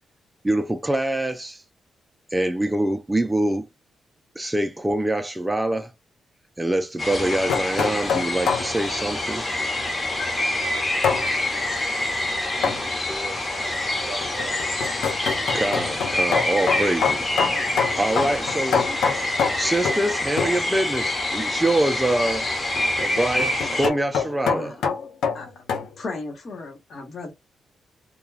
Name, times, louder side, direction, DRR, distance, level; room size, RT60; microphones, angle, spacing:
voice 1, 0.4-1.6 2.3-3.7 4.4-5.9 6.6-9.5 15.5-18.9 19.5-22.5 23.0-24.8, right 1 dB, 10° right, 0.3 m, -25 dB
sound 1, 7.0-23.9, left 1 dB, 25° left, 0.9 m, -26 dB
sound 2, 7.2-8.7 11.0-11.3 12.6-12.9 14.2-20.1 20.4-20.6 22.8-25.9, left 6 dB, 90° left, 0.5 m, -25 dB
voice 2, 12.3-14.6, right 4 dB, 60° right, 0.7 m, -40 dB
voice 3, 24.5-24.9 25.3-25.5 26.0-27.3, left 3 dB, 50° left, 1.0 m, -35 dB
2.3 x 2.2 x 3.2 m
cardioid pair, 95°, 0 cm